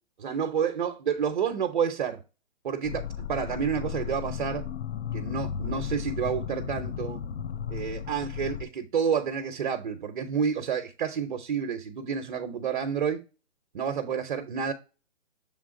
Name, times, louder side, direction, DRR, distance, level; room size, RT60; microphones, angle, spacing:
voice 1, 0.2-2.2 2.6-4.6 5.1-7.2 7.7-13.2 13.7-14.7, right 7 dB, 45° right, 0.8 m, -29 dB
sound 1, 2.8-8.6, left 8 dB, 65° left, 0.6 m, -34 dB
7.2 x 3.6 x 3.7 m
hypercardioid pair, 155°, 34 cm